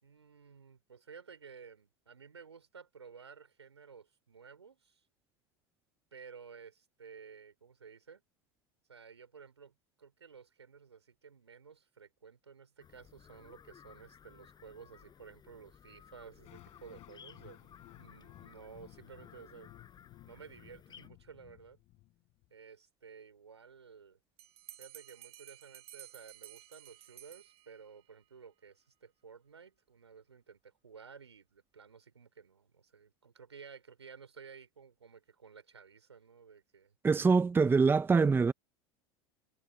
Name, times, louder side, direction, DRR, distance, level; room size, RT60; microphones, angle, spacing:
voice 1, 0.0-5.0 6.1-8.2 8.9-19.7 20.3-21.8 22.5-24.2 24.8-37.0 37.6-37.8, right 6 dB, 90° right, 4.6 m, -54 dB
sound 1, 12.8-21.1, left 8 dB, 30° left, 6.6 m, -58 dB
sound 2, 16.4-22.5, left 19 dB, 50° left, 5.5 m, -57 dB
Bell, 24.4-28.0, right 13 dB, 45° right, 2.2 m, -53 dB
voice 2, 37.0-38.5, right 4 dB, 15° right, 0.8 m, -24 dB
hypercardioid pair, 80°, 14 cm